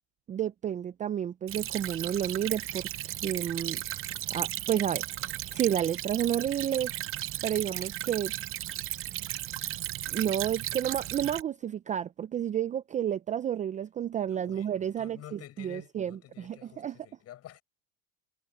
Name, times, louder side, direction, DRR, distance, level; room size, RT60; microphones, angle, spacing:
voice 1, 0.3-2.9 3.2-3.8 4.3-6.9 7.4-8.3 10.1-17.0, right 10 dB, 20° right, 0.4 m, -31 dB
Stream / Trickle dribble, 1.5-11.4, right 14 dB, 35° right, 0.8 m, -35 dB
voice 2, 14.2-17.6, left 12 dB, 40° left, 6.9 m, -50 dB
supercardioid pair, 120°, 36 cm